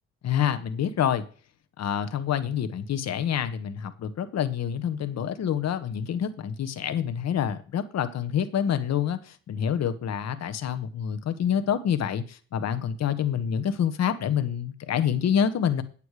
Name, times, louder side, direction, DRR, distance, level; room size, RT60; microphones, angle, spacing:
voice 1, 0.2-1.2 1.8-15.8, left 8 dB, 60° left, 1.2 m, -27 dB
9.0 x 8.4 x 4.9 m
cardioid pair, 90°, 30 cm